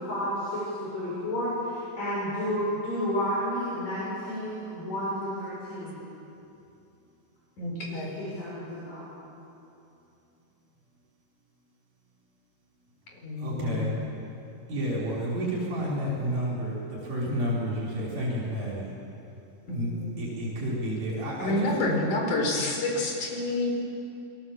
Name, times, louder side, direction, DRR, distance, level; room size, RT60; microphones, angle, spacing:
voice 1, 0.0-6.0 7.9-9.1, equal, 55° left, -8 dB, 8.2 m, -31 dB
voice 2, 7.6-8.1 13.2-13.9 19.7-20.1 21.4-23.7, left 2 dB, 70° left, 0 dB, 5.8 m, -29 dB
voice 3, 13.4-13.9 14.7-18.9 19.7-21.9, equal, 70° right, -5 dB, 6.9 m, -30 dB
29.0 x 21.0 x 7.8 m, 2.8 s
omnidirectional pair, 3.6 m